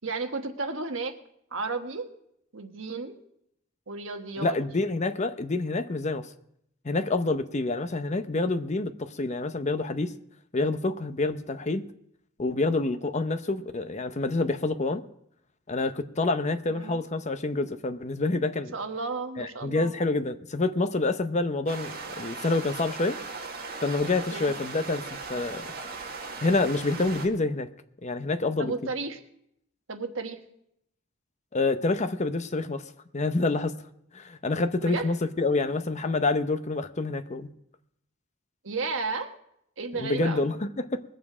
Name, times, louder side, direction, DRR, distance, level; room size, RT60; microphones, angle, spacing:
voice 1, 0.0-1.1 1.5-2.1 2.5-3.2 3.9-4.6 16.7-17.0 18.7-19.9 24.3-24.5 28.6-29.2 29.9-30.4 34.8-35.1 38.6-39.3 39.8-40.5, right 3 dB, 70° right, 6 dB, 1.2 m, -33 dB
voice 2, 4.4-6.3 6.8-10.1 10.5-11.8 12.4-15.0 15.7-18.7 19.4-23.2 23.8-25.7 26.4-27.7 28.0-28.7 31.5-32.8 33.1-33.7 34.1-37.5 40.0-41.0, left 3 dB, 35° left, 10 dB, 0.7 m, -27 dB
sound 1, 21.7-27.3, right 4 dB, 50° right, 1.7 m, -38 dB
21.0 x 7.2 x 4.9 m, 0.75 s
head